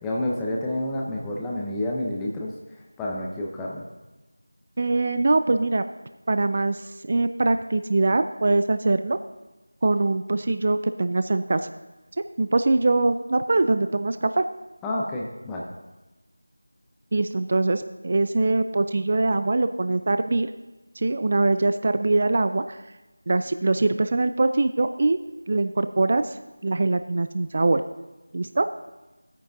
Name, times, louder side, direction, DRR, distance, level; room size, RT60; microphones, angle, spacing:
voice 1, 0.0-3.8 14.8-15.7, left 1 dB, 5° left, -4 dB, 0.6 m, -29 dB
voice 2, 4.8-5.8 6.3-9.2 9.8-11.7 12.2-14.4 17.1-20.5 21.0-22.8 23.3-25.2 25.5-26.4 26.6-27.9 28.3-28.7, right 2 dB, 35° right, 10 dB, 0.3 m, -23 dB
16.0 x 9.0 x 2.6 m, 1.1 s
figure-of-eight pair, 170°, 0 cm